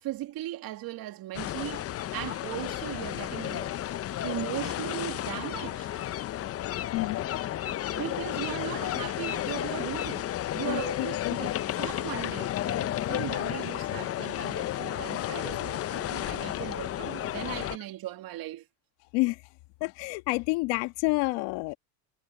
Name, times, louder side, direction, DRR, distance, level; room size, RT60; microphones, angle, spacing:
voice 1, 0.0-3.8 4.2-5.9 7.9-10.3 10.5-18.7, right 15 dB, 55° right, 2.4 m, -38 dB
sound 1, 1.3-17.8, left 13 dB, 35° left, 0.7 m, -32 dB
voice 2, 10.7-11.4 19.1-19.4 19.8-21.8, left 24 dB, 70° left, 1.9 m, -29 dB
supercardioid pair, 105°, 43 cm